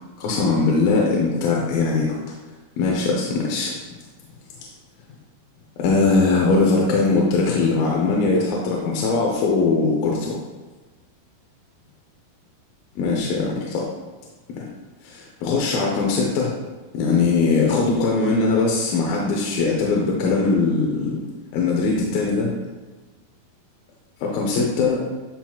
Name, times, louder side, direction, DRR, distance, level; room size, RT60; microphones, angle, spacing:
voice 1, 0.0-2.2 2.8-3.7 5.8-10.4 13.0-13.9 14.6-14.7 15.0-16.6 16.9-21.2 21.5-22.5 24.2-25.1, left 3 dB, 75° left, -2 dB, 2.5 m, -21 dB
11.5 x 5.9 x 2.4 m, 1.3 s
omnidirectional pair, 4.6 m